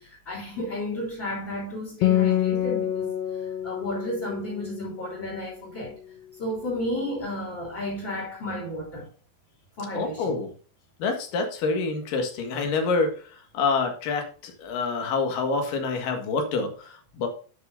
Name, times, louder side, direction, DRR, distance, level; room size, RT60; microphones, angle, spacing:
voice 1, 0.0-3.1 3.4-6.0 6.4-9.1 9.8-10.3, left 1 dB, 30° left, 3.7 m, -32 dB
Acoustic guitar, 2.0-5.7, left 12 dB, 75° left, 2.1 m, -27 dB
voice 2, 9.9-10.5 11.0-13.1 13.5-17.3, left 4 dB, 60° left, 3.0 m, -27 dB
12.0 x 6.8 x 2.6 m
omnidirectional pair, 5.0 m